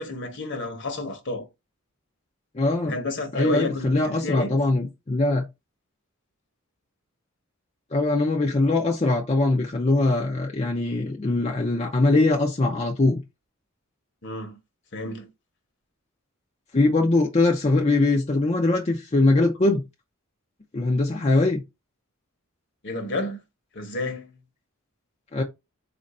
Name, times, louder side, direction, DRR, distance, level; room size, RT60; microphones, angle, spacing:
voice 1, 0.0-1.4 2.8-4.6 14.2-14.6 14.9-15.3 22.8-23.4 23.7-24.3, left 2 dB, 55° left, 1.1 m, -31 dB
voice 2, 2.5-3.0 3.3-5.4 7.9-13.2 16.7-19.8 20.7-21.6 25.3-25.4, left 2 dB, 30° left, 0.5 m, -22 dB
4.3 x 2.6 x 4.1 m
head